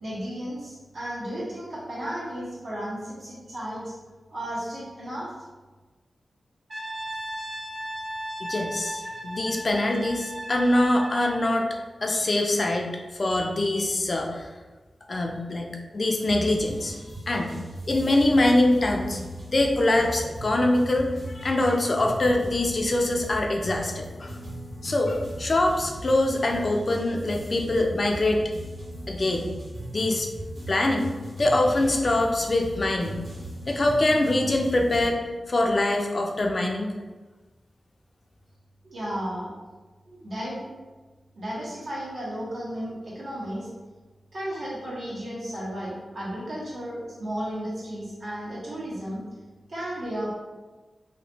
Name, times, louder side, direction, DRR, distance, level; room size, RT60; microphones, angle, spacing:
voice 1, 0.0-3.9 4.3-5.3 38.8-39.5 40.1-40.7 41.3-43.7 44.3-49.2 49.7-50.3, equal, 65° right, -7 dB, 1.4 m, -34 dB
Brass instrument, 6.7-11.5, right 1 dB, 30° right, 0.5 m, -36 dB
voice 2, 8.4-11.7 12.0-12.9 13.2-14.5 15.1-16.9 17.3-17.6 17.8-19.2 19.5-24.3 24.8-28.4 29.1-29.5 29.9-30.3 30.7-31.1 31.4-33.2 33.7-35.2 35.5-36.9, left 1 dB, 40° left, 1 dB, 0.4 m, -24 dB
sound 1, 16.3-35.0, right 1 dB, 85° right, 1.4 m, -38 dB
3.0 x 2.9 x 3.2 m, 1.3 s
wide cardioid pair, 135°, 0 cm